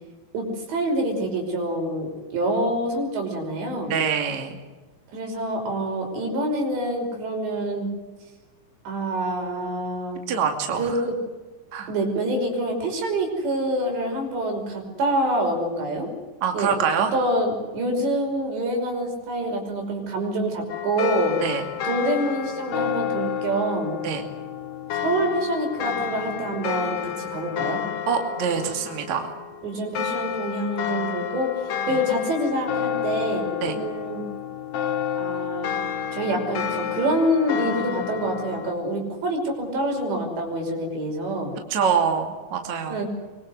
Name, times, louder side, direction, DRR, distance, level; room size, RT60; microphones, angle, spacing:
voice 1, 0.3-3.9 5.1-7.9 8.9-10.2 10.8-11.1 11.9-16.1 16.5-21.4 21.8-24.0 24.9-27.8 29.6-34.3 35.2-35.8 36.1-41.6 42.9-43.1, right 1 dB, 85° right, 3 dB, 7.8 m, -26 dB
voice 2, 3.9-4.6 10.3-11.0 11.7-11.9 16.4-17.1 21.4-21.6 24.0-24.2 28.1-29.3 33.6-33.8 41.7-43.0, right 6 dB, 45° right, 4 dB, 3.5 m, -25 dB
sound 1, 20.7-38.7, left 8 dB, 65° left, 1.9 m, -30 dB
24.5 x 24.0 x 7.9 m, 1.3 s
omnidirectional pair, 4.9 m